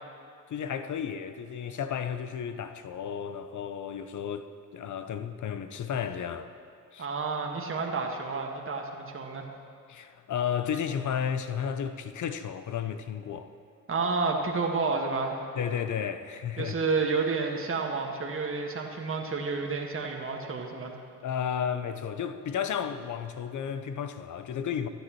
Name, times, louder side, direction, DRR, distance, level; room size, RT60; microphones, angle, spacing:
voice 1, 0.5-6.5 6.9-7.1 9.9-13.5 15.6-16.8 21.2-24.9, left 8 dB, 40° left, 10 dB, 0.9 m, -33 dB
voice 2, 7.0-9.5 13.9-15.4 16.6-20.9, right 4 dB, 25° right, 1 dB, 1.6 m, -30 dB
24.0 x 10.0 x 3.0 m, 2.4 s
figure-of-eight pair, 45°, 49 cm